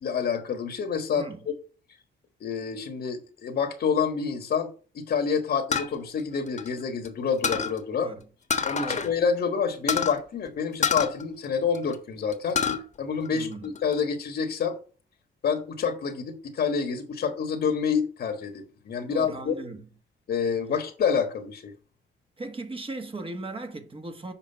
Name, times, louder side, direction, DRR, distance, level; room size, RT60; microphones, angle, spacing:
voice 1, 0.0-1.5 2.4-8.1 8.6-12.6 13.0-14.8 15.4-19.5 20.3-21.7, left 6 dB, 55° left, 1.5 m, -28 dB
sound 1, 5.7-7.1 7.4-7.8 8.5-9.1 9.4-9.5 9.9-10.2 10.8-11.9 12.3-12.8 13.2-14.0, left 6 dB, 35° left, 1.3 m, -27 dB
voice 2, 8.8-9.1 13.3-13.7 19.1-19.9 22.4-24.3, right 2 dB, 25° right, 1.6 m, -37 dB
7.1 x 5.0 x 5.5 m
cardioid pair, 90°, 20 cm